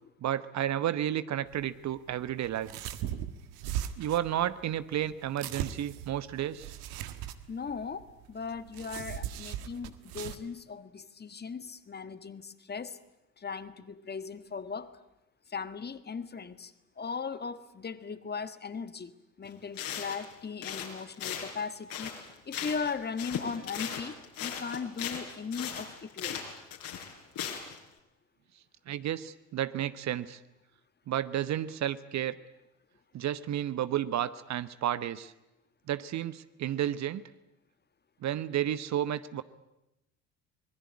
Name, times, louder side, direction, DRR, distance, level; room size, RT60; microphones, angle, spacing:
voice 1, 0.2-2.7 4.0-6.7 28.9-30.4 31.1-32.4 33.1-35.3 35.9-37.2 38.2-39.4, right 11 dB, 45° right, 15 dB, 1.1 m, -32 dB
sound 1, 1.4-10.4, right 11 dB, 60° right, 1.8 m, -39 dB
voice 2, 7.5-13.0 13.4-14.9 15.5-24.1 24.4-26.4, left 5 dB, 25° left, 13 dB, 1.6 m, -38 dB
sound 2, 19.4-19.5 19.8-20.3 20.6-22.9 23.2-27.8, left 8 dB, 55° left, 5.1 m, -38 dB
25.5 x 21.0 x 9.8 m, 0.92 s
figure-of-eight pair, 60°, 40 cm